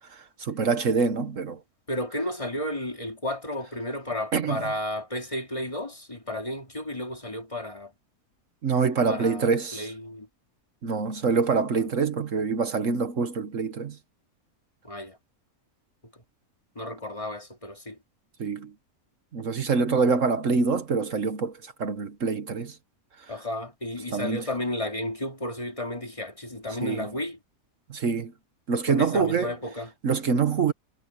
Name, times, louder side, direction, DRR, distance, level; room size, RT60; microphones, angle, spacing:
voice 1, 0.1-1.6 4.3-4.6 8.6-9.9 10.8-14.0 18.4-18.7 19.3-22.8 24.1-24.4 26.8-27.1 27.9-28.3 28.7-29.5 30.0-30.7, right 5 dB, 60° right, 1.6 m, -25 dB
voice 2, 1.9-7.9 9.1-10.3 11.7-11.8 14.8-15.2 16.1-16.2 16.7-18.0 23.3-27.4 28.9-29.9, left 1 dB, 20° left, 2.6 m, -33 dB
omnidirectional pair, 1.5 m